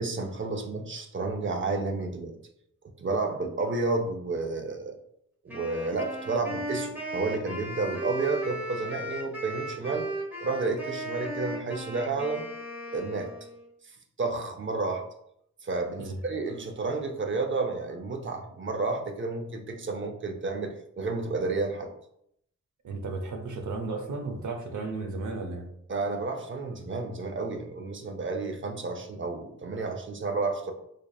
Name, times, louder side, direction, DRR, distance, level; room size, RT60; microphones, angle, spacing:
voice 1, 0.0-2.4 3.0-5.0 5.4-10.1 10.4-12.5 12.9-13.3 13.8-15.0 15.6-21.9 25.9-30.7, right 3 dB, 40° right, 5 dB, 0.6 m, -31 dB
Wind instrument woodwind instrument, 5.5-13.7, right 1 dB, 5° right, 1.0 m, -36 dB
voice 2, 22.8-25.7, right 3 dB, 75° right, 4 dB, 0.7 m, -34 dB
3.7 x 3.4 x 2.3 m, 0.74 s
wide cardioid pair, 95°, 30 cm